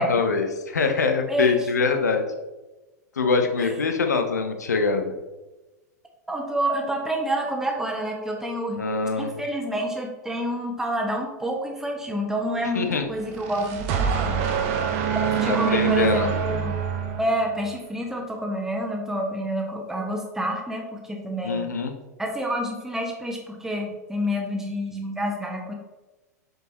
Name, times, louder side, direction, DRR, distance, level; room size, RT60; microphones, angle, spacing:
voice 1, 0.0-2.3 3.2-5.1 8.8-9.3 12.7-13.0 15.4-16.3 21.4-21.9, left 4 dB, 70° left, 6 dB, 0.9 m, -24 dB
voice 2, 1.3-1.6 3.6-3.7 6.3-8.8 9.1-14.3 15.3-16.8 17.2-21.7 22.2-25.7, equal, 5° right, 0 dB, 1.3 m, -28 dB
sound 1, 13.2-17.8, right 7 dB, 45° right, 0.8 m, -25 dB
7.8 x 4.9 x 3.0 m, 1.1 s
figure-of-eight pair, 95°, 9 cm